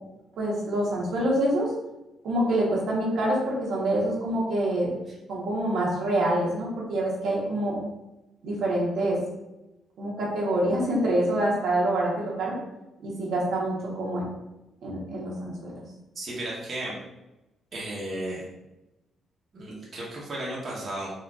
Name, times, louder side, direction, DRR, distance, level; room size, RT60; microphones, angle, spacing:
voice 1, 0.4-1.7 2.2-4.9 5.3-7.8 8.4-9.2 10.0-12.5 13.0-14.2 14.8-15.7, right 1 dB, 70° right, -4 dB, 1.0 m, -26 dB
voice 2, 16.1-17.0 17.7-18.4 19.5-21.1, right 1 dB, 45° right, -5 dB, 0.9 m, -34 dB
3.8 x 2.4 x 2.3 m, 0.97 s
cardioid pair, 90°, 0 cm